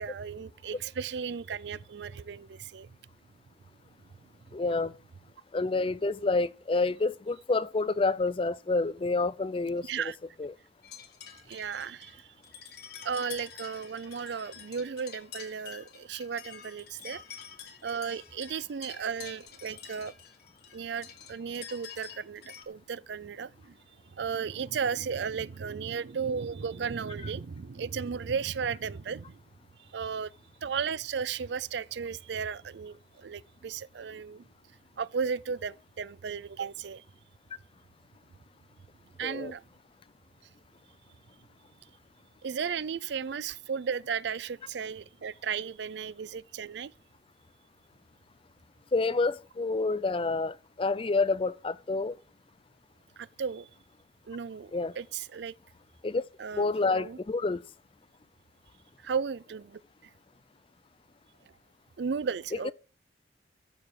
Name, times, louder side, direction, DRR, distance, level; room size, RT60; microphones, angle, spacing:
voice 1, 0.0-2.9 9.9-10.2 11.5-12.3 13.0-17.2 17.8-20.1 20.7-23.7 24.2-29.4 29.9-30.3 30.6-34.4 35.0-37.0 39.2-39.6 42.4-46.9 53.2-53.7 54.3-55.5 56.4-57.2 59.0-59.8 62.0-62.7, right 6 dB, 65° right, 0.4 m, -35 dB
voice 2, 4.5-4.9 5.5-9.9 10.4-10.5 39.2-39.5 48.9-52.2 54.7-55.0 56.0-56.2 56.5-57.6 62.6-62.7, left 3 dB, 30° left, 0.4 m, -28 dB
sound 1, 10.8-22.6, left 8 dB, 55° left, 2.0 m, -48 dB
13.5 x 6.9 x 4.7 m
head